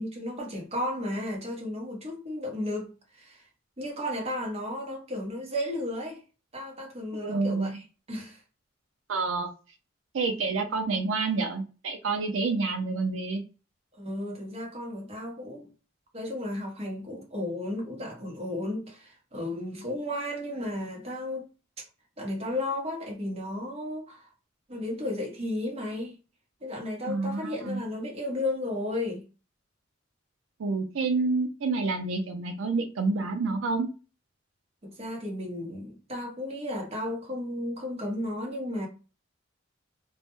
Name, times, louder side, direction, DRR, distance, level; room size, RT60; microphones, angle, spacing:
voice 1, 0.0-3.4 3.8-6.2 6.5-7.8 8.1-8.4 14.0-15.7 16.1-21.5 22.2-24.3 24.7-26.1 26.6-29.2 34.8-38.9, left 1 dB, 30° right, 0.8 m, -34 dB
voice 2, 7.2-7.7 9.1-9.5 10.1-13.4 27.1-27.8 30.6-33.9, right 3 dB, 80° right, 0.5 m, -28 dB
2.2 x 2.1 x 2.9 m
head